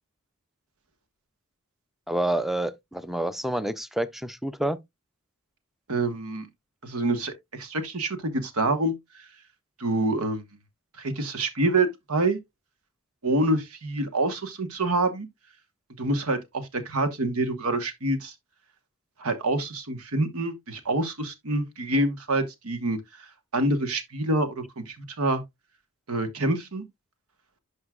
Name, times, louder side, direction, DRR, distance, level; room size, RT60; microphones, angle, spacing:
voice 1, 2.1-4.8, right 1 dB, ahead, 0.5 m, -28 dB
voice 2, 5.9-6.5 6.8-8.9 9.8-10.4 11.0-12.4 13.2-15.3 16.0-18.3 19.2-23.3 23.5-25.4 26.1-26.8, right 2 dB, 90° right, 1.4 m, -26 dB
11.0 x 5.3 x 2.4 m
head